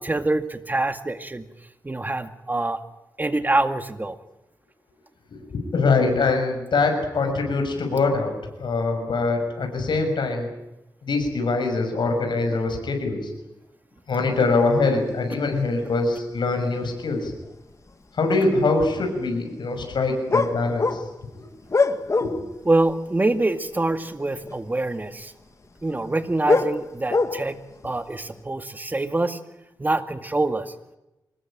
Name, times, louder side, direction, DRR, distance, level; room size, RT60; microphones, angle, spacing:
voice 1, 0.0-1.5 1.8-2.8 3.2-4.2 22.7-25.3 25.8-27.6 27.8-29.4 29.8-30.7, right 2 dB, 25° right, 9 dB, 2.0 m, -25 dB
voice 2, 5.3-8.3 8.6-10.5 11.1-13.2 14.1-17.3 18.2-21.0 22.2-22.3, left 3 dB, 80° left, 4 dB, 6.4 m, -23 dB
sound 1, 16.8-16.9 17.4-17.9 18.3-18.5 20.3-22.6 22.8-23.0 24.0-24.1 24.4-24.7 25.9-27.7 28.2-28.4, left 3 dB, 40° left, 1.7 m, -23 dB
24.5 x 20.0 x 9.0 m, 0.94 s
wide cardioid pair, 95°, 8 cm